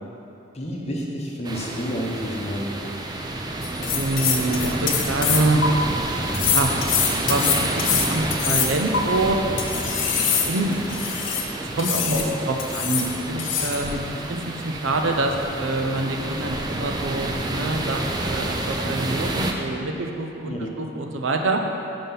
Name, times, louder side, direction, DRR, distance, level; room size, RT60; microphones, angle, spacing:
voice 1, 0.5-2.9 20.5-20.8, equal, 35° left, -2 dB, 0.8 m, -30 dB
sound 1, 1.4-19.5, right 2 dB, 20° right, 0.4 m, -29 dB
sound 2, 3.6-5.7 6.3-9.0 9.6-11.5 11.8-12.3 12.6-13.1 13.4-13.8, left 7 dB, 75° left, 0.8 m, -24 dB
sound 3, 3.8-6.0 7.1-7.6 9.2-11.6 12.0-16.2 18.8-19.7, left 1 dB, 50° left, 1.1 m, -39 dB
voice 2, 3.9-5.6 6.4-7.0 7.3-9.4 10.2-10.8 11.6-21.6, right 2 dB, 75° right, 3 dB, 0.6 m, -26 dB
5.6 x 5.3 x 5.7 m, 2.7 s
head